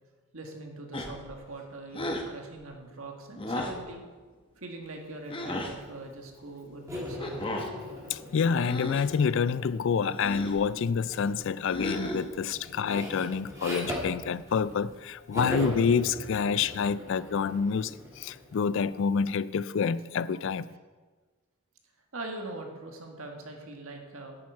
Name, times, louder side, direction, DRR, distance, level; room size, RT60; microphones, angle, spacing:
voice 1, 0.3-4.0 4.6-7.5 22.1-24.4, right 2 dB, 75° right, 1.8 m, -42 dB
sound 1, 0.9-1.3 1.9-2.3 3.4-3.9 5.3-5.8 7.2-7.7 8.6-9.1 10.1-10.6 11.7-12.4, left 1 dB, 25° left, 1.0 m, -34 dB
sound 2, 6.9-10.2 11.1-11.4 11.8-15.0 15.3-18.9, left 1 dB, 15° right, 2.6 m, -39 dB
voice 2, 8.1-20.7, left 6 dB, 60° left, 0.3 m, -28 dB
10.5 x 8.8 x 4.7 m
head